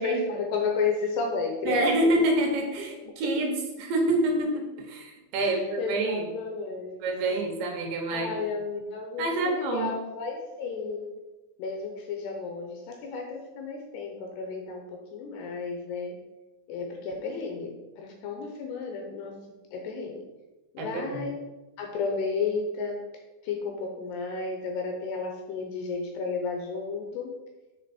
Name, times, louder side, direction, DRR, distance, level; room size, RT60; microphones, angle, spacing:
voice 1, 0.0-2.2 5.4-7.0 7.3-7.4 8.1-11.1 11.6-16.2 16.7-19.3 19.7-20.2 20.7-21.4 21.8-23.0 23.4-27.3, left 4 dB, 75° left, 2 dB, 2.6 m, -32 dB
voice 2, 1.7-6.2 7.0-8.3 9.2-9.9 20.8-21.3, right 1 dB, 75° right, 1 dB, 3.5 m, -27 dB
7.8 x 6.7 x 4.3 m, 1.1 s
omnidirectional pair, 5.5 m